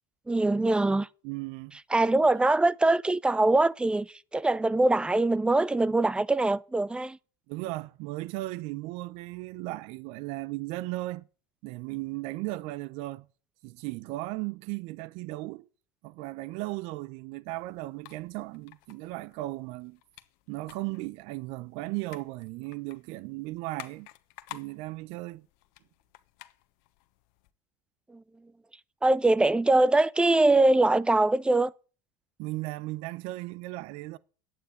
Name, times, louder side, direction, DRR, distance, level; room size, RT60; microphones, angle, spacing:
voice 1, 0.3-1.1 1.9-7.2 28.1-28.2 29.0-31.7, right 2 dB, 10° right, 0.6 m, -23 dB
voice 2, 1.2-1.7 7.5-11.2 11.6-13.3 13.6-15.7 16.0-20.0 20.5-24.1 24.5-25.5 32.4-34.2, right 19 dB, 65° right, 0.7 m, -36 dB
sound 1, 17.5-27.5, left 17 dB, 70° left, 1.1 m, -52 dB
11.0 x 9.0 x 8.3 m
supercardioid pair, 100°, 11 cm